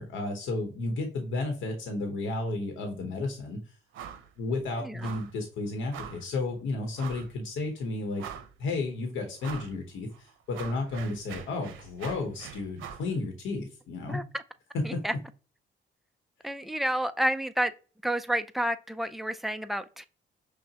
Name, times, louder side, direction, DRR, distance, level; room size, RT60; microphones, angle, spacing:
voice 1, 0.0-3.6 4.4-8.2 8.6-14.2 14.7-15.0, left 2 dB, 80° left, 0.9 m, -32 dB
sound 1, 3.9-4.3 4.6-4.7 5.0-5.4 5.9-6.3 7.0-7.3 7.8-7.9 8.2-8.7 9.4-9.8 10.1-13.1, right 8 dB, 85° right, 0.7 m, -43 dB
voice 2, 14.1-14.4 14.8-15.1 16.4-17.7 18.0-20.1, right 1 dB, ahead, 0.4 m, -30 dB
5.8 x 2.1 x 2.8 m
cardioid pair, 90°, 20 cm